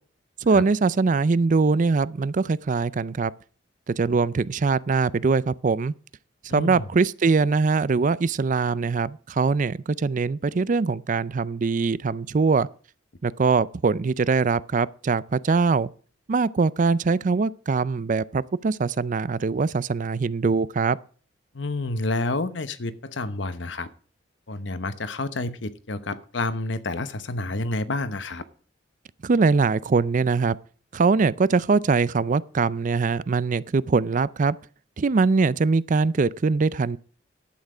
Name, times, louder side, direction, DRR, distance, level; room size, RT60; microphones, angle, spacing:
voice 1, 0.4-3.3 3.9-5.9 6.4-12.7 13.2-15.9 16.3-21.0 29.2-30.6 30.9-34.6 35.0-37.0, right 4 dB, 40° right, 0.4 m, -22 dB
voice 2, 6.5-6.9 21.5-23.9 24.5-28.4, left 2 dB, 70° left, 1.0 m, -29 dB
11.5 x 9.0 x 4.9 m
head